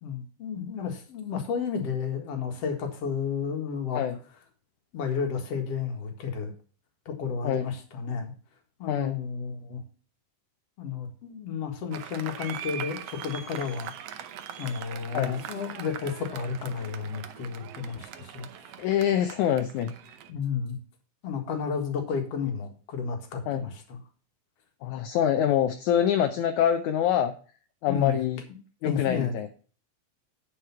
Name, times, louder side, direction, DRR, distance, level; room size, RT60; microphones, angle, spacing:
voice 1, 0.0-4.0 4.9-6.5 7.1-8.3 8.8-9.8 10.8-13.9 14.6-18.7 20.3-20.8 21.2-24.0 27.9-28.3 28.8-29.4, left 6 dB, 50° left, 4 dB, 2.4 m, -32 dB
Applause, 11.9-20.3, right 9 dB, 85° right, 1.4 m, -41 dB
voice 2, 18.8-19.9 23.5-23.6 24.8-27.3 27.8-28.4 28.8-29.5, left 10 dB, 75° left, 6 dB, 1.9 m, -25 dB
10.5 x 5.0 x 5.6 m, 0.39 s
omnidirectional pair, 4.0 m